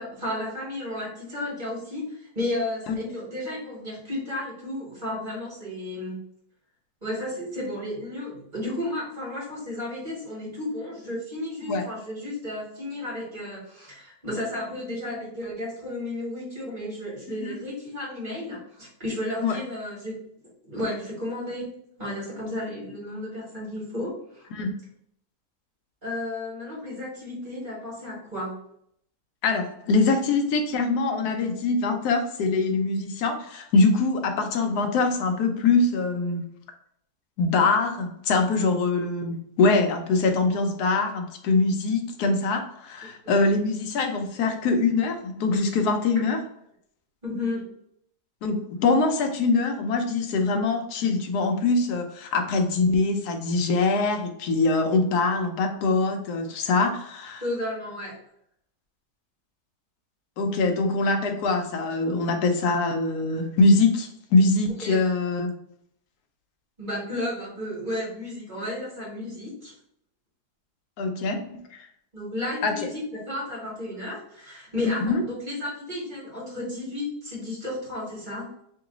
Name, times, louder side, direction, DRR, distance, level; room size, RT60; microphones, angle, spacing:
voice 1, 0.0-6.2 7.0-20.2 20.6-21.7 22.0-24.5 26.0-28.5 47.2-47.6 57.4-58.1 64.8-65.0 66.8-69.7 72.1-78.5, left 1 dB, 30° right, -5 dB, 1.7 m, -33 dB
voice 2, 29.4-36.4 37.4-46.4 48.4-57.4 60.4-65.5 71.0-71.9 72.6-72.7 74.8-75.3, left 3 dB, 85° left, 4 dB, 1.2 m, -23 dB
3.1 x 2.9 x 3.7 m, 0.70 s
omnidirectional pair, 1.7 m